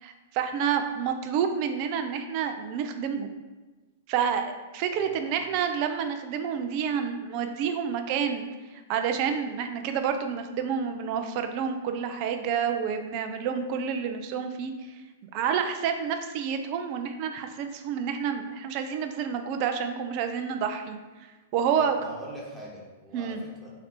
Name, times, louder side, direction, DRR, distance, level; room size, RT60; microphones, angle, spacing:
voice 1, 0.0-3.3 4.1-8.5 8.9-15.0 15.3-21.0 21.5-22.0 23.1-23.4, right 7 dB, 40° right, 7 dB, 0.4 m, -29 dB
voice 2, 4.8-5.4 21.7-23.7, right 1 dB, 5° right, -7 dB, 1.3 m, -43 dB
4.1 x 2.6 x 4.2 m, 1.2 s
figure-of-eight pair, 100°, 0 cm